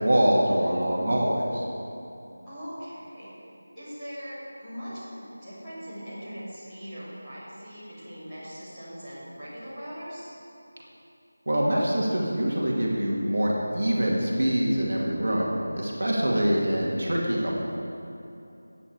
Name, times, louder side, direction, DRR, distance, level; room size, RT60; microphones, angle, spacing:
voice 1, 0.0-1.6 11.5-17.5, equal, 55° right, -3 dB, 2.1 m, -24 dB
voice 2, 2.4-3.3 3.7-10.3, equal, 5° left, -20 dB, 2.7 m, -40 dB
14.5 x 8.8 x 4.6 m, 2.9 s
figure-of-eight pair, 180°, 0 cm